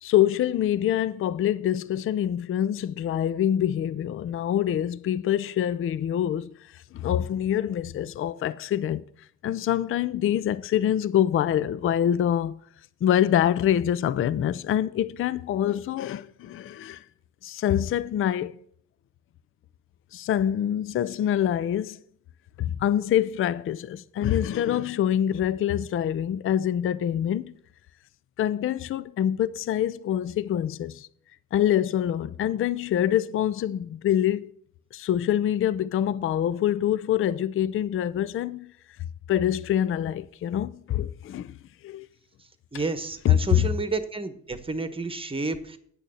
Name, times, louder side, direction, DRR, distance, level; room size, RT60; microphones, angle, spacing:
voice 1, 0.0-6.5 6.9-9.0 9.4-12.6 13.0-17.0 17.4-18.6 20.1-22.0 22.6-27.5 28.4-31.1 31.5-34.5 34.9-38.7 39.3-41.6 41.8-42.1 43.2-43.6, left 10 dB, 45° left, 0.4 m, -25 dB
voice 2, 42.7-45.8, right 3 dB, 20° right, 1.1 m, -30 dB
9.0 x 6.6 x 6.2 m
cardioid pair, 90°, 30 cm